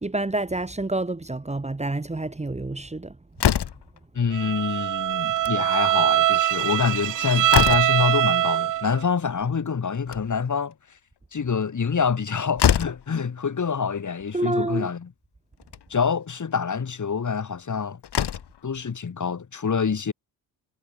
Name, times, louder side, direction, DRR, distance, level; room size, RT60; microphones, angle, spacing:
voice 1, 0.0-3.1 14.3-14.9, right 2 dB, 15° right, 1.5 m, -28 dB
Slam, 3.4-4.0 5.2-5.6 5.9-6.0 6.3-6.4 7.0-8.1 9.8-10.5 12.1-12.2 12.6-13.1 14.2-14.3 14.7-14.8 15.6-15.9 17.6-17.7 18.0-18.6, left 9 dB, 60° left, 2.4 m, -25 dB
voice 2, 4.1-10.7 11.3-15.1 15.9-18.0 18.6-20.1, left 6 dB, 40° left, 3.7 m, -26 dB
Bowed string instrument, 4.3-9.0, right 13 dB, 50° right, 0.4 m, -22 dB
cardioid pair, 85°, 45 cm